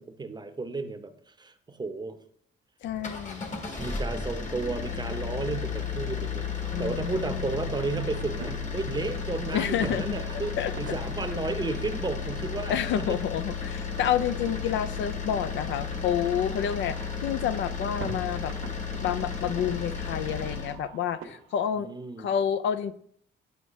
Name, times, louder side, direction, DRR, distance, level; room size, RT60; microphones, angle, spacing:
voice 1, 0.0-2.1 3.7-13.2 21.8-22.3, right 3 dB, 20° right, 9 dB, 0.7 m, -33 dB
voice 2, 2.8-3.5 6.7-7.5 9.5-10.1 10.6-10.7 12.7-18.5 19.0-21.9 22.2-23.0, left 9 dB, 70° left, 13 dB, 0.4 m, -29 dB
sound 1, 2.9-20.8, left 5 dB, 40° left, 1.2 m, -34 dB
sound 2, 4.2-21.8, right 5 dB, 80° right, 0.9 m, -48 dB
8.0 x 4.5 x 3.0 m, 0.64 s
cardioid pair, 90°, 20 cm